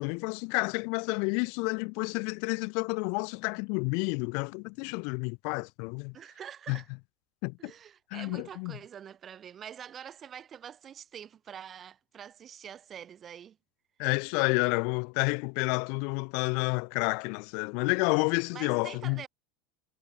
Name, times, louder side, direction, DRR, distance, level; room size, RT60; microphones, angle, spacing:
voice 1, 0.0-6.1 6.7-6.8 7.4-7.7 8.1-8.7 14.0-19.2, left 37 dB, 60° left, 2.5 m, -30 dB
voice 2, 6.1-6.9 7.6-13.6 18.5-19.3, right 9 dB, 35° right, 7.8 m, -45 dB
hypercardioid pair, 95°, 0 cm